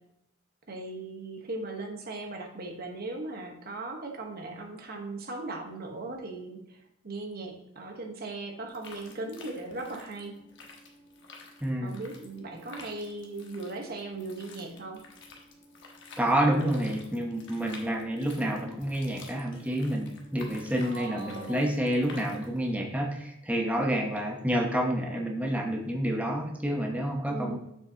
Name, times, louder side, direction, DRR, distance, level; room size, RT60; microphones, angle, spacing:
voice 1, 0.7-10.4 11.8-15.0 20.8-21.7 27.3-27.6, right 2 dB, 45° right, 3 dB, 1.1 m, -38 dB
sound 1, 8.7-22.7, left 3 dB, 60° left, 1.2 m, -50 dB
voice 2, 11.6-12.0 16.2-27.6, right 1 dB, 5° right, 1 dB, 0.8 m, -29 dB
7.4 x 6.5 x 2.8 m, 0.79 s
head